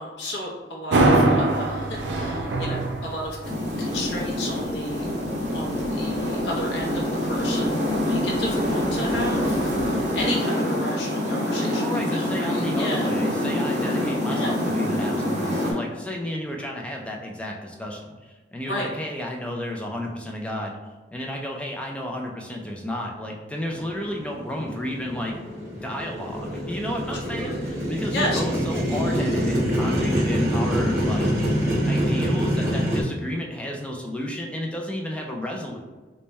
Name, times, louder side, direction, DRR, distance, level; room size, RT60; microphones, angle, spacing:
voice 1, 0.0-3.4 3.8-5.1 5.5-13.1 14.2-14.5 18.6-18.9 27.3-27.6 28.1-28.4 28.7-28.8, left 1 dB, 80° left, -2 dB, 0.7 m, -33 dB
sound 1, 0.9-10.2, right 2 dB, 85° right, 0.5 m, -27 dB
sound 2, 3.4-15.7, left 1 dB, 45° right, 1.1 m, -25 dB
voice 2, 11.8-20.8 21.1-25.4 25.8-31.3 31.9-35.8, left 1 dB, 5° left, 0 dB, 0.4 m, -32 dB
Motorcycle, 23.7-33.0, equal, 15° right, 0.9 m, -25 dB
3.4 x 2.1 x 4.0 m, 1.3 s
head